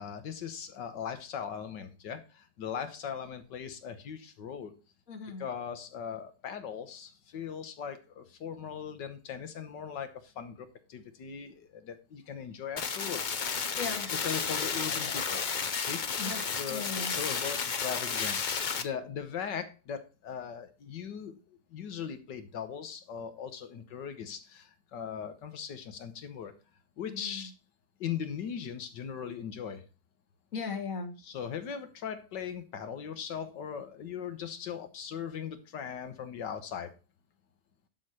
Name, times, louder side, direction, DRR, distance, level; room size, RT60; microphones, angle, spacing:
voice 1, 0.0-4.8 5.4-13.2 14.1-15.5 15.8-16.1 16.6-26.5 27.0-27.5 28.0-29.8 31.2-36.9, left 7 dB, 85° left, 9 dB, 1.8 m, -39 dB
voice 2, 5.1-5.4 13.7-14.1 16.2-16.4 16.7-17.2 27.0-27.5 30.5-31.2, left 4 dB, 50° left, 4 dB, 1.8 m, -37 dB
sound 1, 12.8-18.8, left 6 dB, 70° left, 0.4 m, -32 dB
11.5 x 4.5 x 4.9 m, 0.31 s
omnidirectional pair, 1.8 m